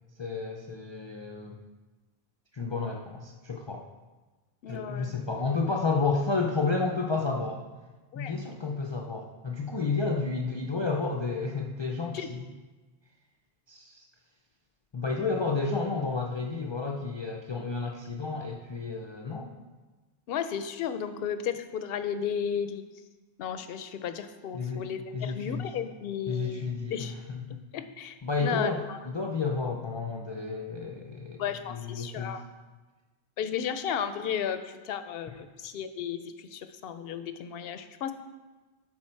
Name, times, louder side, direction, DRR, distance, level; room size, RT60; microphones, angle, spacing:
voice 1, 0.2-1.6 2.5-3.8 4.7-7.6 8.1-12.5 13.7-14.0 14.9-19.5 24.5-24.9 25.1-25.7 26.3-27.6 28.2-31.4 31.7-32.4 35.3-35.4, left 4 dB, 40° left, 0 dB, 0.4 m, -31 dB
voice 2, 4.6-5.1 8.1-8.4 12.1-12.3 20.3-22.8 23.4-27.1 27.7-29.0 31.4-32.4 33.4-38.1, left 8 dB, 65° left, 10 dB, 0.7 m, -34 dB
10.5 x 4.0 x 4.4 m, 1.2 s
omnidirectional pair, 1.1 m